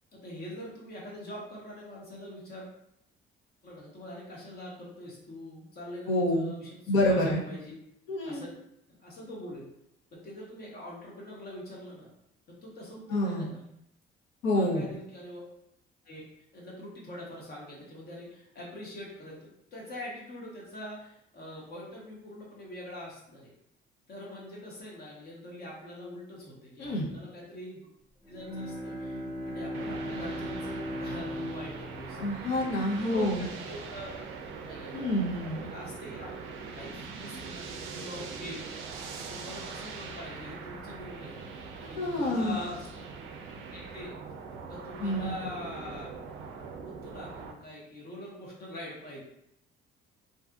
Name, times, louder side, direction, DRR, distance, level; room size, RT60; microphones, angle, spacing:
voice 1, 0.1-2.7 3.6-7.8 8.2-8.5 8.9-9.6 10.1-12.1 12.5-13.7 14.5-15.4 16.0-16.2 16.5-23.5 24.1-27.8 28.3-32.5 32.9-34.2 34.6-35.2 35.6-36.3 36.7-38.7 39.2-42.9 43.7-44.3 44.7-46.1 46.9-49.2, left 1 dB, 50° left, -4 dB, 1.0 m, -43 dB
voice 2, 6.1-6.5 6.9-7.4 8.1-8.4 13.1-13.5 14.4-14.9 26.8-27.1 32.2-33.5 34.9-35.7 42.0-42.6 45.0-45.3, left 1 dB, 80° left, -2 dB, 0.8 m, -27 dB
Bowed string instrument, 28.2-33.6, equal, 10° left, 1.0 m, -38 dB
sound 1, 29.7-47.5, right 5 dB, 85° right, 0.4 m, -42 dB
2.7 x 2.4 x 2.3 m, 0.76 s
cardioid pair, 115°, 20 cm